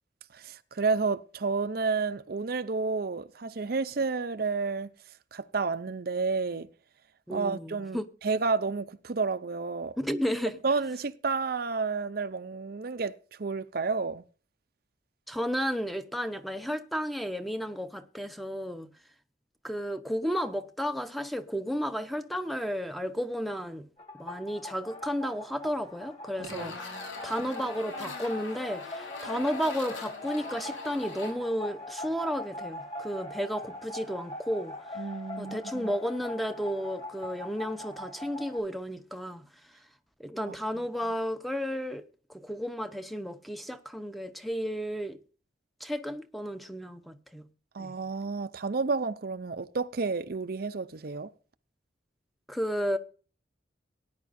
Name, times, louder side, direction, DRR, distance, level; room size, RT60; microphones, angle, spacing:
voice 1, 0.3-4.9 5.3-6.7 7.3-9.9 10.6-14.2 26.4-26.8 35.0-35.9 40.5-40.9 47.7-51.3, right 4 dB, 50° right, 0.6 m, -31 dB
voice 2, 7.3-8.1 10.0-10.6 15.3-18.9 19.6-23.9 24.2-26.9 27.2-34.9 35.4-39.4 40.2-42.0 42.3-45.2 45.8-47.4 47.8-47.9 52.5-53.0, equal, ahead, 0.8 m, -33 dB
sound 1, 24.0-38.6, left 2 dB, 30° left, 2.7 m, -42 dB
sound 2, 26.4-31.3, left 3 dB, 85° left, 3.8 m, -41 dB
18.0 x 10.5 x 2.6 m
head